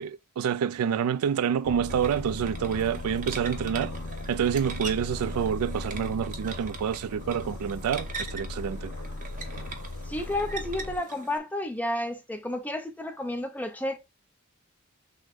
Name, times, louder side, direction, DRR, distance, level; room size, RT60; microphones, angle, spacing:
voice 1, 0.0-3.9 4.3-8.9, right 8 dB, 85° right, 0.3 m, -28 dB
Aircraft, 1.6-11.0, left 2 dB, 75° left, 0.7 m, -37 dB
sound 1, 1.9-11.4, right 4 dB, 35° right, 0.7 m, -42 dB
voice 2, 10.0-14.0, left 1 dB, 5° left, 0.6 m, -31 dB
6.2 x 2.1 x 3.6 m
head